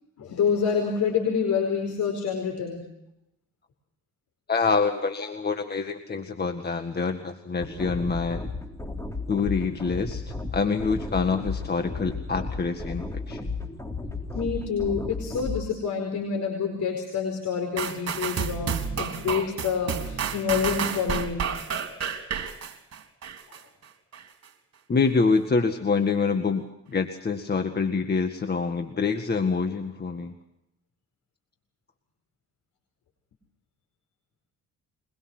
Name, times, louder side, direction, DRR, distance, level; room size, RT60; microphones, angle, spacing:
voice 1, 0.2-2.9 14.3-21.5, left 6 dB, 70° left, 3 dB, 4.8 m, -27 dB
voice 2, 4.5-8.4 9.3-10.2 10.5-13.4 24.9-30.3, left 4 dB, 35° left, 6 dB, 1.8 m, -26 dB
sound 1, 7.6-15.6, left 3 dB, 10° left, 3.6 m, -34 dB
sound 2, 17.8-23.6 24.1-24.2, right 7 dB, 55° right, 3.6 m, -30 dB
23.5 x 22.0 x 6.2 m, 0.82 s
cardioid pair, 90°, 30 cm